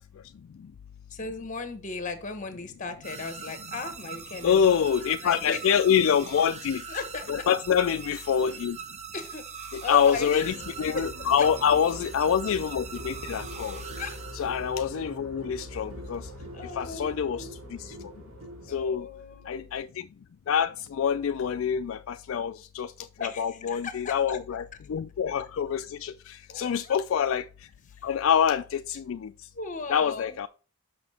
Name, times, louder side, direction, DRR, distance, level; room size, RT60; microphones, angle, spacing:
voice 1, 1.1-4.6 5.2-5.6 6.9-7.5 9.1-10.5 10.9-11.5 14.0-14.2 16.5-17.5 18.7-19.9 23.2-24.4 26.5-27.0 27.9-28.1 29.5-30.4, left 4 dB, 35° left, 1.1 m, -37 dB
sound 1, 3.0-14.9, right 6 dB, 30° right, 0.7 m, -42 dB
voice 2, 4.4-6.8 7.3-8.8 9.7-13.8 14.3-16.3 16.7-17.9 18.7-19.1 19.5-20.1 20.5-22.9 23.2-27.5 28.0-29.3 29.9-30.5, left 7 dB, 65° left, 0.3 m, -26 dB
sound 2, 10.4-18.9, equal, 75° right, 1.9 m, -42 dB
6.2 x 5.6 x 4.2 m
head